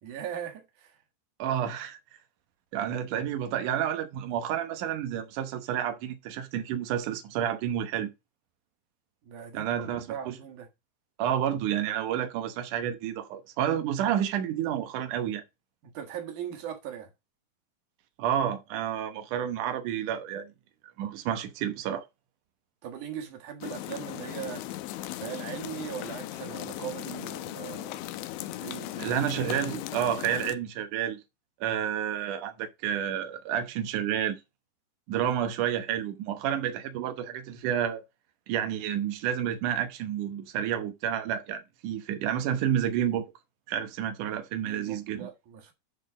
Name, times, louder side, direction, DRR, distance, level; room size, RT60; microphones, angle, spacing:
voice 1, 0.0-1.0 9.2-10.7 15.8-17.1 22.8-24.7 25.1-28.1 28.6-29.1 44.6-45.7, right 9 dB, 55° right, 2.5 m, -39 dB
voice 2, 1.4-2.0 2.7-8.1 9.5-10.3 11.2-15.4 18.2-20.5 21.0-22.0 29.0-31.2 31.6-34.4 35.1-38.0 38.5-43.3 43.7-45.3, right 10 dB, 90° right, 1.7 m, -30 dB
sound 1, 23.6-30.6, left 14 dB, 85° left, 3.0 m, -37 dB
10.5 x 4.3 x 5.2 m
omnidirectional pair, 5.3 m